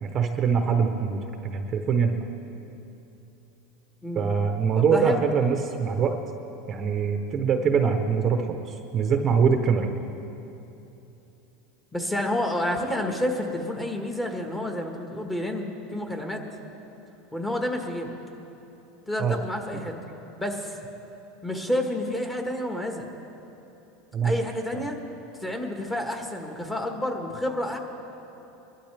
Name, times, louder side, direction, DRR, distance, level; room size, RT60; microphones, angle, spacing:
voice 1, 0.0-2.1 4.1-6.2 6.7-9.9 19.2-19.4 24.1-24.3 24.7-24.8, right 6 dB, 30° right, 5 dB, 0.9 m, -23 dB
voice 2, 4.7-5.2 11.9-16.4 17.3-18.1 19.1-20.1 20.4-20.8 21.4-23.1 24.2-25.0 25.4-27.8, left 1 dB, 10° left, 2 dB, 1.5 m, -29 dB
23.0 x 12.0 x 3.4 m, 3.0 s
supercardioid pair, 140°, 0 cm